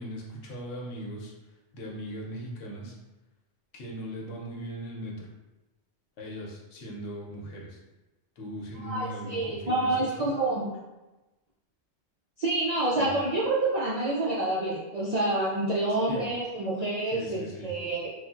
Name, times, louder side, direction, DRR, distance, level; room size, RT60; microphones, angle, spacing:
voice 1, 0.0-1.3 1.7-3.0 3.7-5.3 6.2-7.8 8.4-10.3 13.0-13.1 16.1-16.2 17.1-17.7, right 1 dB, 85° left, -2 dB, 1.0 m, -39 dB
voice 2, 8.8-10.6 12.4-18.1, right 2 dB, 65° right, -6 dB, 0.4 m, -28 dB
3.2 x 2.4 x 2.3 m, 1.1 s
omnidirectional pair, 1.2 m